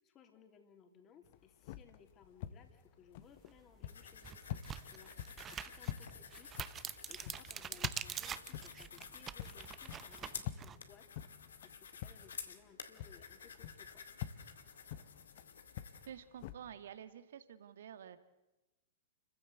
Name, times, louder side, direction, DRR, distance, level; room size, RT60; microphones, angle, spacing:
voice 1, 0.0-5.1 5.5-11.1 11.6-13.9, left 7 dB, 30° left, 5 dB, 3.4 m, -62 dB
sound 1, 1.2-12.7 13.0-16.5, left 11 dB, 50° left, 1.2 m, -48 dB
sound 2, 3.5-3.6 4.1-10.8, right 8 dB, 25° right, 0.9 m, -45 dB
sound 3, 3.9-16.1, left 6 dB, 75° left, 2.1 m, -52 dB
voice 2, 16.1-18.2, right 9 dB, 65° right, 11 dB, 1.9 m, -50 dB
29.5 x 15.0 x 8.2 m, 1.0 s
figure-of-eight pair, 105°, 0 cm